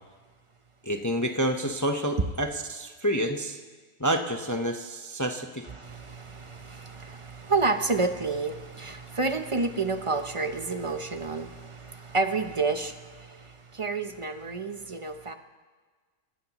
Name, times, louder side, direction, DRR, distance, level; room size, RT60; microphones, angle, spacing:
voice 1, 0.9-3.6 4.0-5.6, equal, 15° left, 4 dB, 0.7 m, -28 dB
voice 2, 5.6-15.3, right 3 dB, 35° right, 7 dB, 0.5 m, -30 dB
27.5 x 15.5 x 3.0 m, 1.4 s
omnidirectional pair, 1.6 m